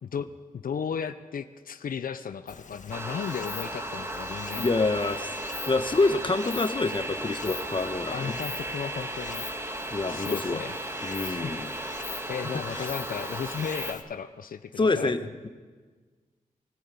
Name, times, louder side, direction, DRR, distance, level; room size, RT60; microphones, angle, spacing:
voice 1, 0.5-4.7 8.1-9.5 10.1-10.7 11.2-11.5 12.3-15.1, left 7 dB, 80° left, 10 dB, 0.8 m, -35 dB
Stream, 2.5-14.0, left 5 dB, 60° left, 1.5 m, -43 dB
sound 1, 2.9-13.9, right 1 dB, 20° right, 1.8 m, -35 dB
voice 2, 4.6-5.3 5.7-8.4 9.9-10.6 11.0-11.7 12.7-12.9 14.8-15.5, left 3 dB, 35° left, 8 dB, 1.3 m, -27 dB
23.5 x 14.5 x 8.6 m, 1.4 s
wide cardioid pair, 85°, 14 cm